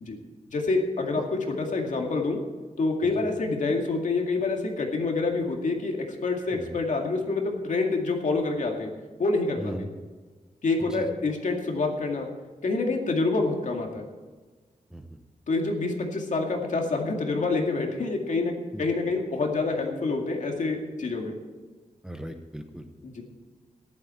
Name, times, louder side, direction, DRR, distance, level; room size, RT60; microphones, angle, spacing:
voice 1, 0.5-2.4 2.8-8.9 9.2-9.7 10.6-12.3 12.6-14.0 15.5-21.3 23.0-23.2, left 3 dB, 60° left, 2 dB, 2.2 m, -27 dB
voice 2, 9.6-9.9 10.8-11.0 14.9-15.0 18.7-18.9 22.0-22.9, equal, 5° right, 5 dB, 0.9 m, -37 dB
14.0 x 11.5 x 4.4 m, 1.3 s
wide cardioid pair, 170°, 14 cm